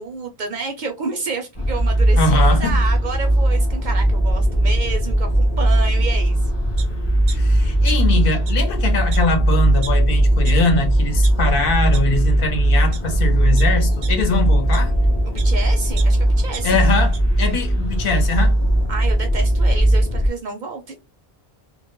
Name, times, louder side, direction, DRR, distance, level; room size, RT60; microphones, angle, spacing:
voice 1, 0.0-6.5 15.2-16.9 18.9-21.0, right 4 dB, 60° right, 0.6 m, -30 dB
sound 1, 1.5-20.3, right 1 dB, 35° left, 0.5 m, -18 dB
voice 2, 2.1-2.8 7.3-14.9 16.6-18.6, left 3 dB, 65° left, 0.8 m, -22 dB
sound 2, 6.8-6.9 7.3-8.2 8.4-8.5 9.1-9.2 9.8-9.9 10.4-10.5 11.0-11.3 11.9-12.0 12.7-13.0 13.6-15.5 16.0-17.2 17.6-17.7, right 7 dB, 85° right, 0.9 m, -36 dB
2.2 x 2.1 x 2.9 m
omnidirectional pair, 1.0 m